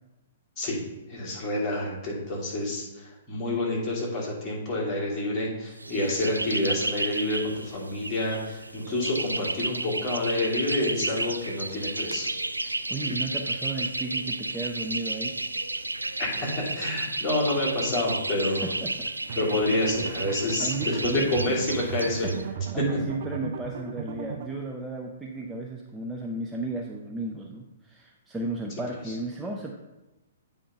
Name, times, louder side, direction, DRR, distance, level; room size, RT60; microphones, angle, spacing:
voice 1, 1.1-12.3 16.2-18.7 19.4-22.3, left 1 dB, 20° left, -6 dB, 2.8 m, -28 dB
sound 1, 5.8-22.4, right 2 dB, 85° right, 0.3 m, -32 dB
voice 2, 12.6-15.4 18.5-19.1 20.6-21.5 22.1-29.7, right 2 dB, 10° right, 0 dB, 0.6 m, -34 dB
sound 2, 19.3-24.5, right 6 dB, 50° right, 0.7 m, -36 dB
8.4 x 3.6 x 5.3 m, 1.1 s
figure-of-eight pair, 115°, 0 cm